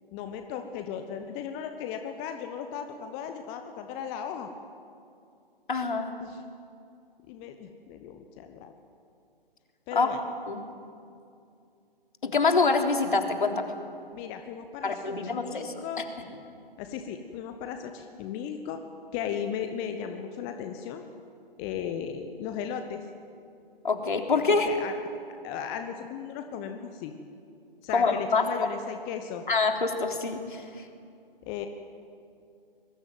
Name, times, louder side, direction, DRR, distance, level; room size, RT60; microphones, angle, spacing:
voice 1, 0.1-4.5 6.2-6.5 7.3-8.7 9.9-10.2 14.1-16.1 16.8-18.8 19.1-21.0 21.6-23.1 24.5-24.9 25.3-27.1 27.8-29.5 31.5-31.7, left 8 dB, 15° left, 7 dB, 0.9 m, -36 dB
voice 2, 5.7-6.1 9.9-10.1 10.5-10.6 12.2-13.7 14.8-15.7 23.8-24.7 27.9-28.4 29.5-30.8, left 4 dB, 55° left, 4 dB, 3.7 m, -25 dB
26.0 x 22.0 x 9.3 m, 2.5 s
figure-of-eight pair, 140°, 29 cm